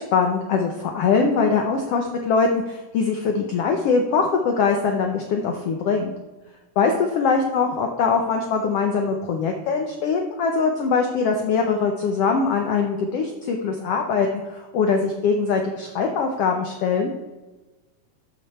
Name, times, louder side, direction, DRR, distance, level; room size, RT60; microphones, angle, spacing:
voice 1, 0.0-6.1 6.8-17.1, left 5 dB, 90° left, 3 dB, 1.3 m, -22 dB
12.5 x 5.3 x 4.2 m, 1.2 s
omnidirectional pair, 3.8 m